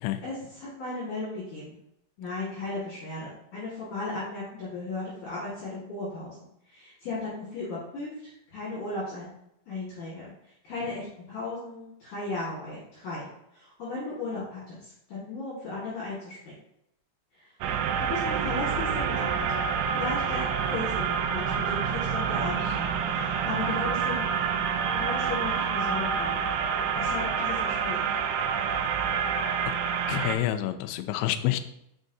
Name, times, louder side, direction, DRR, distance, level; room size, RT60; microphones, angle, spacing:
voice 1, 0.2-1.7 2.2-6.4 6.6-9.3 9.7-16.6 17.3-17.5 18.0-19.6 19.9-24.3 24.9-26.4 26.9-28.0, left 3 dB, 55° left, -9 dB, 2.6 m, -36 dB
sound 1, 17.6-30.4, right 7 dB, 85° right, 2.5 m, -28 dB
voice 2, 30.1-31.6, left 13 dB, 85° left, 9 dB, 2.7 m, -28 dB
6.3 x 6.1 x 2.7 m, 0.80 s
omnidirectional pair, 5.4 m